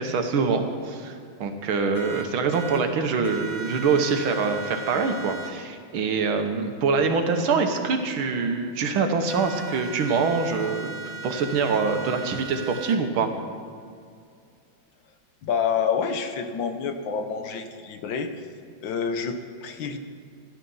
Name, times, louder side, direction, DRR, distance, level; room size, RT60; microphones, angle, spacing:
voice 1, 0.0-13.3, right 4 dB, 85° right, 6 dB, 2.0 m, -25 dB
sound 1, 1.9-2.8 3.2-5.5 9.3-13.0, right 4 dB, 85° left, 2.1 m, -37 dB
voice 2, 15.4-18.3 18.8-20.0, left 6 dB, 70° left, 7 dB, 1.7 m, -28 dB
13.0 x 12.0 x 5.6 m, 2.3 s
omnidirectional pair, 2.2 m